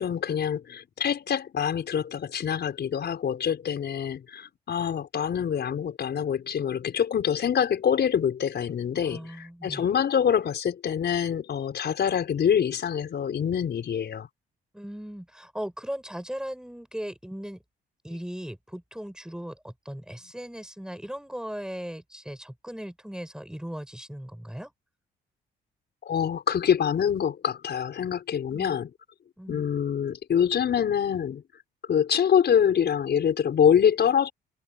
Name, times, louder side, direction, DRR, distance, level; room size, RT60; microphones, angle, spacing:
voice 1, 0.0-14.3 26.0-28.9 29.5-31.4 31.9-34.3, left 8 dB, 55° left, 5.7 m, -25 dB
voice 2, 9.1-9.8 14.7-17.6 18.0-24.7 28.5-28.8 29.4-29.6, equal, 5° right, 5.3 m, -38 dB
cardioid pair, 90°, 20 cm